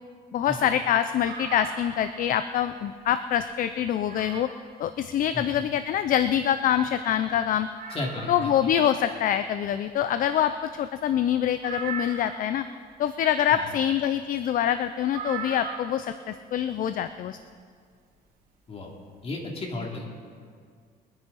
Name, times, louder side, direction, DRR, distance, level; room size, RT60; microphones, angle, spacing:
voice 1, 0.3-4.5 4.8-7.7 8.3-12.6 13.0-17.4, left 10 dB, 55° left, 11 dB, 0.5 m, -25 dB
sound 1, 1.2-2.3 2.7-2.8 3.3-3.4 4.1-4.7 6.4-6.5 6.7-6.8 7.2-7.3 7.7-8.8 11.6-12.6 15.1-16.1 17.4-17.5, right 6 dB, 60° right, 3.0 m, -38 dB
voice 2, 7.9-8.7 13.5-13.7 18.7-18.9 19.2-20.0, left 2 dB, 35° left, -1 dB, 2.9 m, -34 dB
23.5 x 9.7 x 4.1 m, 2.1 s
cardioid pair, 110°, 17 cm